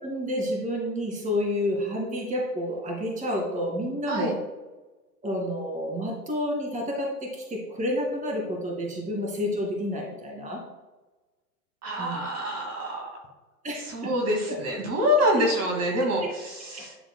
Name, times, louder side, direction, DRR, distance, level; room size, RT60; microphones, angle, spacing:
voice 1, 0.0-4.4 5.2-10.6 12.0-12.2 13.6-14.1 14.5-14.6 16.7-16.8, left 1 dB, 15° right, -1 dB, 2.0 m, -29 dB
voice 2, 11.8-13.1 13.8-17.0, equal, 30° right, 0 dB, 2.2 m, -26 dB
11.0 x 6.5 x 2.2 m, 1.2 s
hypercardioid pair, 100°, 49 cm